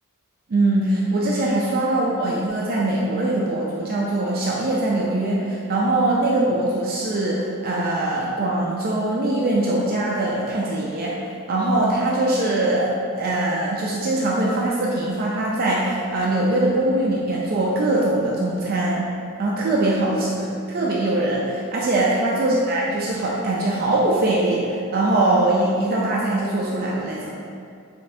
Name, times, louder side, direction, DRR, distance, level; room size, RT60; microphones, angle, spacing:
voice 1, 0.5-11.2 11.5-19.1 19.4-27.3, right 2 dB, 45° right, -4 dB, 0.4 m, -22 dB
4.1 x 3.3 x 2.7 m, 2.4 s
head